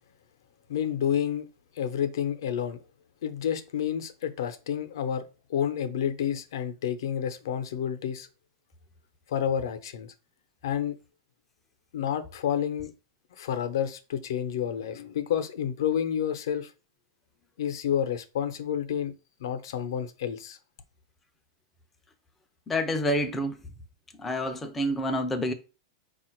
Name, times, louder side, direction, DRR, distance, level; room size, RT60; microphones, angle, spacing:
voice 1, 0.7-1.5 1.8-2.8 3.2-5.2 5.5-8.3 9.3-10.1 10.6-11.0 11.9-12.9 13.4-16.7 17.6-19.1 19.4-20.6, left 9 dB, 60° left, 0.6 m, -29 dB
voice 2, 22.7-23.6 24.2-25.5, equal, 5° left, 0.4 m, -28 dB
4.7 x 2.4 x 4.4 m
supercardioid pair, 175°, 2 cm